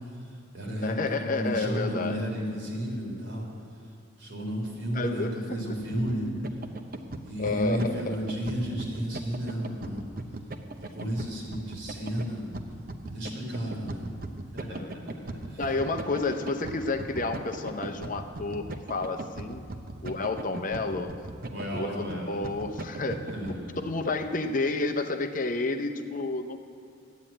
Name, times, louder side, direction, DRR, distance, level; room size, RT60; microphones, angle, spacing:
voice 1, 0.0-3.5 4.2-6.3 7.2-10.1 10.8-12.5 13.1-14.1 14.5-15.8 21.5-22.3 23.2-23.9, equal, 65° right, -2 dB, 3.6 m, -33 dB
voice 2, 0.8-2.3 4.9-5.3 7.4-8.2 14.7-15.0 15.6-19.6 20.0-21.1 21.7-23.2 23.8-26.6, left 3 dB, 40° left, 7 dB, 0.7 m, -30 dB
sound 1, 5.8-23.6, right 2 dB, 45° right, 0.8 m, -39 dB
12.0 x 9.1 x 8.7 m, 2.6 s
head